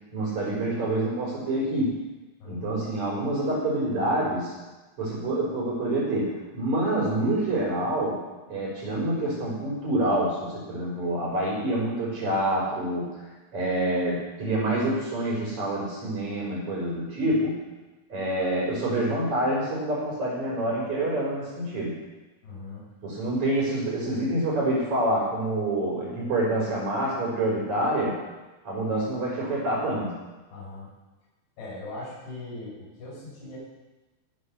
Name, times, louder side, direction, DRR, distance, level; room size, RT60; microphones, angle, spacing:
voice 1, 0.1-2.0 2.4-4.5 5.0-17.6 18.1-22.0 23.0-28.2 28.6-30.2, right 1 dB, 40° right, -7 dB, 5.8 m, -27 dB
voice 2, 2.4-2.8 22.4-22.9 30.5-30.9 31.6-33.6, left 2 dB, 75° left, -7 dB, 8.5 m, -40 dB
19.5 x 7.9 x 6.9 m, 1.1 s
omnidirectional pair, 5.2 m